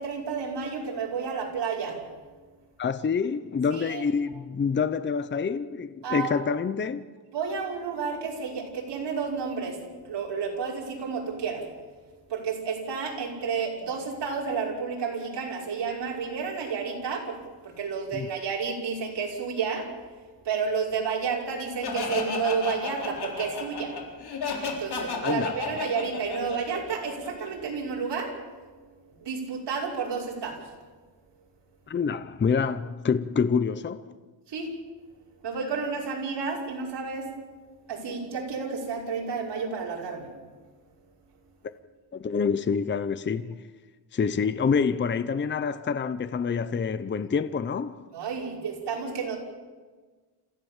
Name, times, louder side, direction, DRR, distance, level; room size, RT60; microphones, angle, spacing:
voice 1, 0.0-2.0 3.7-4.1 6.0-6.5 7.3-11.6 12.3-19.8 20.4-24.0 24.6-28.3 29.1-30.6 34.5-34.7 35.4-37.3 37.9-40.3 48.1-49.4, right 5 dB, 70° right, 5.9 m, -31 dB
voice 2, 2.8-7.0 18.1-18.3 25.2-25.6 31.9-34.0 42.1-43.6 44.1-48.0, left 6 dB, 25° left, 0.7 m, -27 dB
Laughter, 21.8-27.5, left 5 dB, 60° left, 4.1 m, -32 dB
28.0 x 15.5 x 7.3 m
wide cardioid pair, 145°, 43 cm